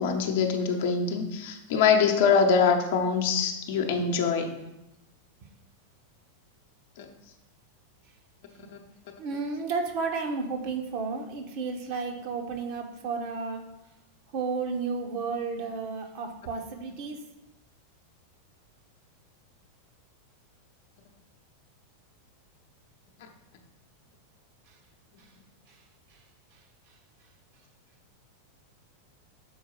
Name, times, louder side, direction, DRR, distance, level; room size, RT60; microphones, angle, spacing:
voice 1, 0.0-4.5 7.0-7.1, left 5 dB, 55° left, 4 dB, 0.9 m, -24 dB
voice 2, 8.6-8.9 9.2-13.7 14.3-17.2 24.7-24.8 25.2-25.3 25.7-25.8 26.1-26.2, right 4 dB, 45° right, 4 dB, 0.9 m, -32 dB
6.4 x 4.5 x 4.5 m, 0.94 s
figure-of-eight pair, 90°, 0 cm